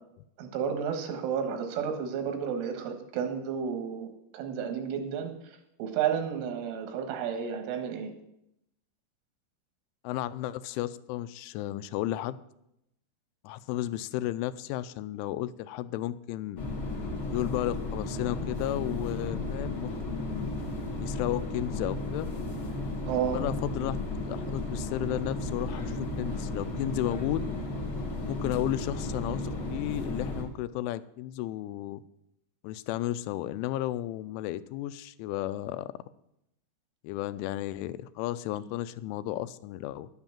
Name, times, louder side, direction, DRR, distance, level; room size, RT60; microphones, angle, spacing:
voice 1, 0.4-5.3 5.8-8.1 23.1-23.4, right 7 dB, 90° right, 6 dB, 4.0 m, -31 dB
voice 2, 10.0-12.4 13.4-16.7 17.3-20.5 21.0-22.3 23.3-24.0 24.3-27.5 28.3-32.0 32.6-35.9 37.0-40.1, left 14 dB, 90° left, 15 dB, 3.0 m, -33 dB
sound 1, 16.6-30.4, left 2 dB, 55° left, 1.4 m, -34 dB
10.5 x 8.9 x 7.2 m, 0.81 s
omnidirectional pair, 5.4 m